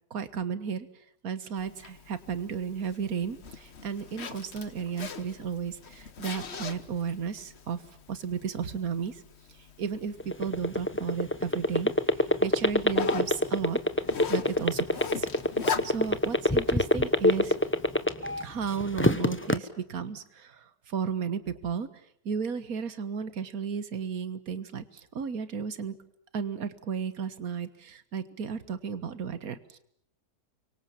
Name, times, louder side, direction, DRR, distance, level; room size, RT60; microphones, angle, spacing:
voice 1, 0.1-0.9 1.2-7.8 8.1-9.2 9.8-11.9 12.4-13.8 14.3-15.3 15.8-17.6 18.4-21.9 22.3-26.0 26.3-29.8, right 6 dB, 65° right, 13 dB, 1.9 m, -34 dB
Zipper (clothing), 1.6-18.0, left 6 dB, 45° left, 1.4 m, -41 dB
sound 1, 10.2-18.4 18.8-19.6, left 1 dB, 10° left, 1.0 m, -22 dB
29.5 x 24.5 x 7.3 m, 0.65 s
omnidirectional pair, 1.6 m